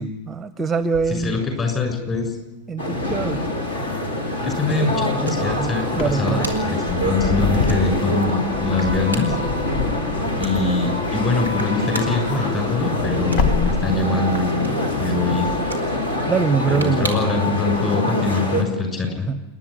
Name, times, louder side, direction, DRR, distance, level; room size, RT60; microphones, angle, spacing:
voice 1, 0.0-1.4 2.7-3.4 4.4-4.5 5.2-6.5 16.3-17.1 19.3-19.4, right 5 dB, 15° right, 15 dB, 0.7 m, -24 dB
sound 1, 0.8-17.5, right 2 dB, 85° left, 2.9 m, -40 dB
voice 2, 1.2-2.4 4.4-9.4 10.4-14.7 15.0-15.5 16.7-19.3, left 3 dB, 25° left, 4 dB, 6.6 m, -23 dB
sound 2, 2.8-18.6, left 1 dB, 70° left, 3.0 m, -25 dB
Wind / Car, 5.9-11.7 12.0-14.5, left 5 dB, 40° left, 1.1 m, -27 dB
27.5 x 10.5 x 9.9 m, 1.1 s
figure-of-eight pair, 90°, 0 cm